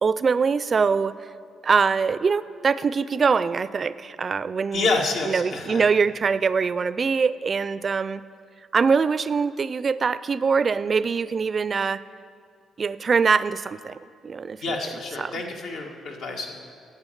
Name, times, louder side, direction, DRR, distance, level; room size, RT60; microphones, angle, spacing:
voice 1, 0.0-1.2 1.6-4.9 5.2-8.2 8.7-12.0 12.8-14.0 14.2-14.6 15.2-15.3, right 5 dB, 40° right, 16 dB, 0.4 m, -23 dB
voice 2, 4.7-5.8 14.6-16.5, left 3 dB, 80° left, 0 dB, 1.7 m, -28 dB
10.5 x 7.9 x 9.1 m, 2.2 s
cardioid pair, 90°, 0 cm